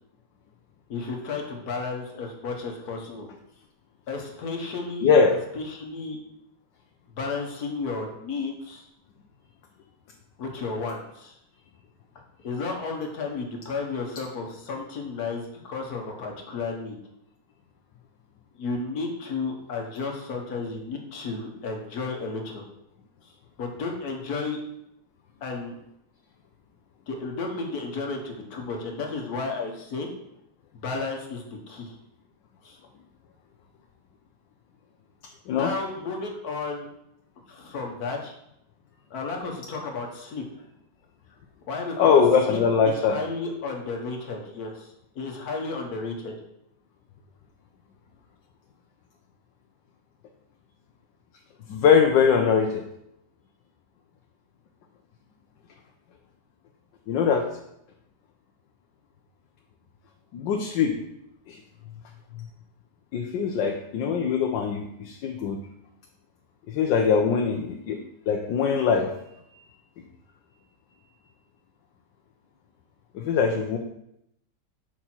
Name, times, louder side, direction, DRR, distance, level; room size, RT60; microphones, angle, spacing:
voice 1, 0.9-3.3 4.1-6.2 7.1-8.9 10.4-11.4 12.4-17.0 18.6-22.6 23.2-23.3 23.6-24.6 25.4-25.8 27.1-30.1 30.7-31.9 32.6-32.8 35.5-36.9 37.5-38.3 39.1-40.7 41.7-42.6 42.9-46.3, left 4 dB, 60° left, 1 dB, 1.5 m, -33 dB
voice 2, 5.0-5.3 35.5-35.7 42.0-43.2 51.7-52.8 57.1-57.5 60.3-60.9 61.5-61.6 63.1-65.6 66.7-68.0 68.3-69.1 69.5-69.6 73.1-73.8, left 6 dB, 80° left, 2 dB, 1.3 m, -22 dB
6.1 x 5.0 x 4.3 m, 0.79 s
omnidirectional pair, 1.9 m